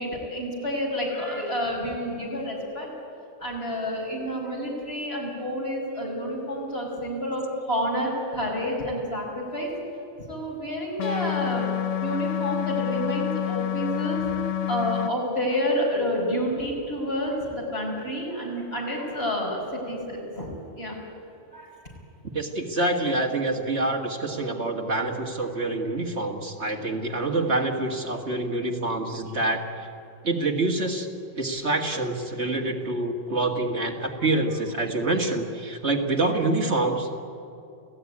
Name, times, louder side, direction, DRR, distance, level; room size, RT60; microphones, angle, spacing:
voice 1, 0.0-2.9 3.4-9.7 10.3-11.7 12.0-14.2 14.7-20.5 20.8-21.0 21.5-21.7 36.3-36.4, equal, 50° left, -3 dB, 5.7 m, -29 dB
sound 1, 11.0-15.1, left 11 dB, 70° left, 1.3 m, -28 dB
voice 2, 22.3-29.9 30.2-31.1 31.4-37.2, right 2 dB, 60° right, 2 dB, 2.2 m, -26 dB
29.5 x 16.5 x 9.7 m, 2.7 s
omnidirectional pair, 1.3 m